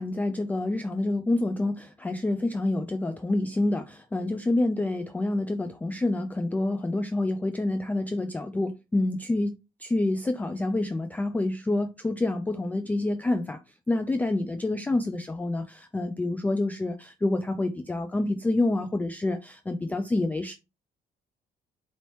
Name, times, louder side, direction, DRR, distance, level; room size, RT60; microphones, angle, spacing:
voice 1, 0.0-13.6 13.9-20.5, left 2 dB, 10° left, 0.3 m, -27 dB
4.2 x 3.1 x 2.9 m
cardioid pair, 110°, 17 cm